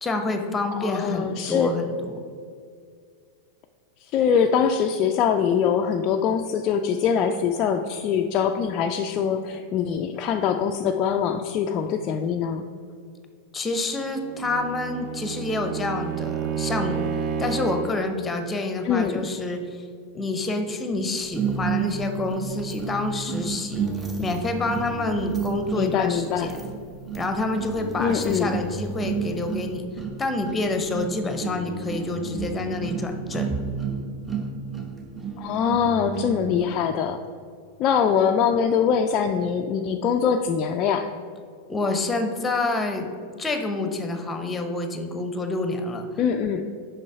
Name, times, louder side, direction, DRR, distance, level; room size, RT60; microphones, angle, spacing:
voice 1, 0.0-2.1 13.5-17.0 17.4-19.8 20.1-23.9 24.2-26.6 27.1-29.8 30.2-33.5 41.7-43.1 43.4-46.1, left 2 dB, 15° left, 6 dB, 0.8 m, -28 dB
voice 2, 0.8-1.7 4.1-12.7 18.8-19.3 25.7-26.5 28.0-28.5 35.4-37.2 37.8-41.1 46.2-46.6, left 7 dB, 35° left, 4 dB, 0.3 m, -23 dB
Bowed string instrument, 14.2-18.1, right 7 dB, 40° right, 0.5 m, -30 dB
sound 1, 21.3-36.8, right 5 dB, 15° right, 0.8 m, -31 dB
6.7 x 5.3 x 4.7 m, 2.2 s
figure-of-eight pair, 90°, 0 cm